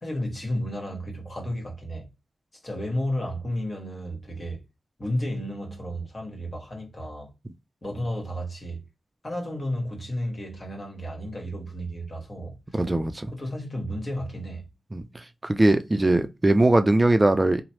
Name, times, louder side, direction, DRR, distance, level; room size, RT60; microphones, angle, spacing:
voice 1, 0.0-2.1 2.6-4.6 5.0-7.3 7.8-8.8 9.2-12.9 13.3-14.7, equal, 50° left, 1.4 m, -32 dB
voice 2, 12.7-13.3 14.9-15.0 15.4-17.6, right 2 dB, 30° right, 0.4 m, -20 dB
3.0 x 2.0 x 2.9 m
cardioid pair, 45°, 0 cm